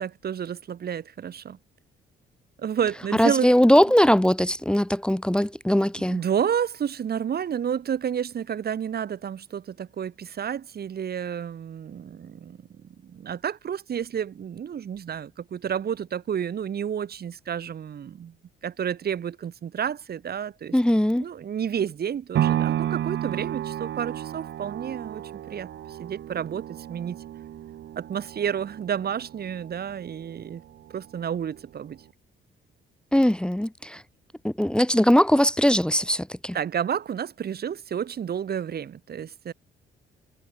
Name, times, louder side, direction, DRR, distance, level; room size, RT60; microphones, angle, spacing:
voice 1, 0.0-1.6 2.6-3.5 6.0-18.3 18.6-20.8 21.2-27.2 27.9-30.6 30.9-32.0 36.5-39.5, right 8 dB, 50° right, 1.7 m, -30 dB
voice 2, 3.1-6.2 20.7-21.2 33.1-34.0 34.4-36.6, equal, 5° left, 1.2 m, -20 dB
sound 1, 22.4-30.5 30.9-31.0, right 11 dB, 65° right, 1.4 m, -31 dB
cardioid pair, 90°, 20 cm